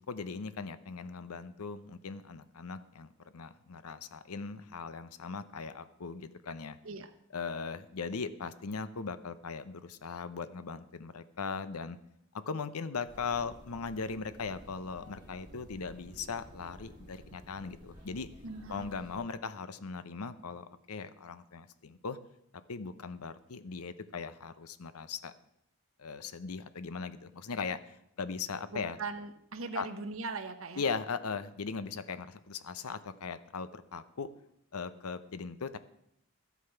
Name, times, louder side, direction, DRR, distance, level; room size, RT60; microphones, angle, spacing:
voice 1, 0.1-6.8 7.3-12.0 12.5-18.3 18.7-22.2 22.7-25.3 26.0-29.0 29.7-29.9 30.8-34.3 34.7-35.8, left 5 dB, 80° left, 13 dB, 0.7 m, -39 dB
sound 1, 13.0-19.2, equal, 20° right, 3.5 m, -53 dB
voice 2, 18.4-18.9 28.7-30.8, right 3 dB, 60° right, 8 dB, 1.0 m, -40 dB
12.5 x 8.2 x 5.7 m, 0.77 s
head